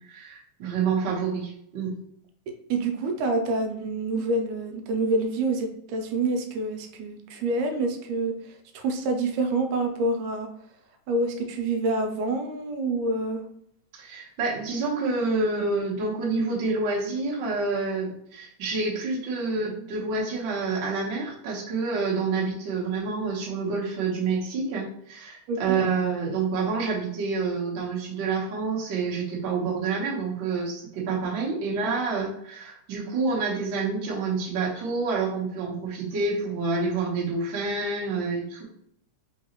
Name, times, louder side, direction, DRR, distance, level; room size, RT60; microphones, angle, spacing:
voice 1, 0.1-1.9 13.9-38.6, right 4 dB, 55° right, -4 dB, 1.3 m, -28 dB
voice 2, 2.7-10.5 11.1-13.4 25.5-25.8, right 2 dB, 85° right, 5 dB, 2.1 m, -27 dB
3.9 x 3.9 x 2.9 m, 0.70 s
omnidirectional pair, 3.5 m